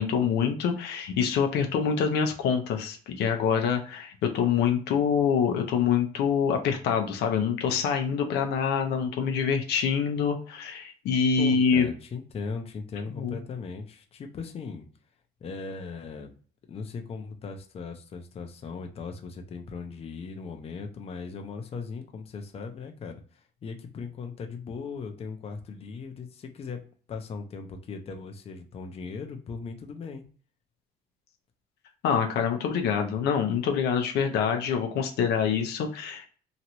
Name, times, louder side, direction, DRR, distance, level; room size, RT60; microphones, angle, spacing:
voice 1, 0.0-11.9 13.1-13.4 32.0-36.3, left 7 dB, 75° left, 4 dB, 0.6 m, -25 dB
voice 2, 11.4-14.9 15.4-16.4 16.7-26.8 27.1-30.2, left 5 dB, 35° left, 4 dB, 0.6 m, -38 dB
3.0 x 2.4 x 2.9 m, 0.41 s
cardioid pair, 110°, 17 cm